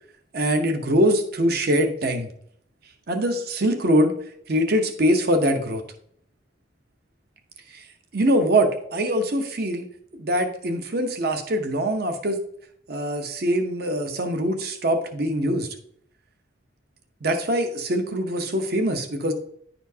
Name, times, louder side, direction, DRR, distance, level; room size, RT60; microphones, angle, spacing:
voice 1, 0.3-2.3 3.1-4.1 4.5-5.8 7.7-7.8 8.1-9.9 10.2-12.4 12.9-15.7 17.2-19.3, equal, 55° right, 6 dB, 0.8 m, -23 dB
10.5 x 4.3 x 2.7 m, 0.66 s
head